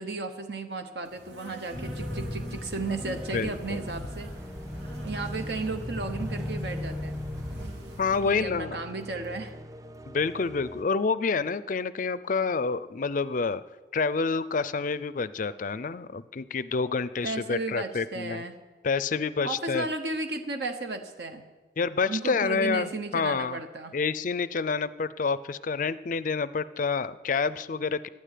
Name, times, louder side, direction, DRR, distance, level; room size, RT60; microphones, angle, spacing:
voice 1, 0.0-4.3 5.0-7.2 8.1-9.6 17.2-18.6 19.4-21.5 22.1-24.0, right 3 dB, 65° right, 7 dB, 1.0 m, -34 dB
Insect, 1.0-8.2, right 2 dB, 85° right, 2.8 m, -47 dB
sound 1, 1.7-7.7, left 1 dB, ahead, 0.9 m, -36 dB
sound 2, 2.8-10.8, equal, 20° right, 0.5 m, -44 dB
voice 2, 3.1-3.8 8.0-8.8 10.1-13.6 13.9-18.4 18.8-19.9 21.8-23.6 23.9-28.1, left 4 dB, 45° left, 16 dB, 0.4 m, -28 dB
12.5 x 10.0 x 9.3 m, 1.2 s
head